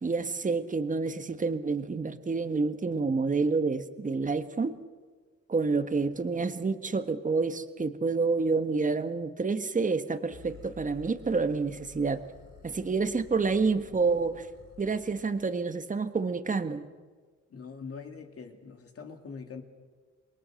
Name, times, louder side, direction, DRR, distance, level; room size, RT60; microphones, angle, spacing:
voice 1, 0.0-4.7 5.5-12.2 12.6-14.5 14.8-16.8, right 4 dB, 25° right, 9 dB, 1.5 m, -28 dB
sound 1, 10.3-15.5, left 6 dB, 85° left, 5.6 m, -52 dB
voice 2, 17.5-19.6, left 5 dB, 50° left, 5 dB, 3.0 m, -43 dB
28.0 x 21.5 x 6.5 m, 1.5 s
cardioid pair, 90°, 30 cm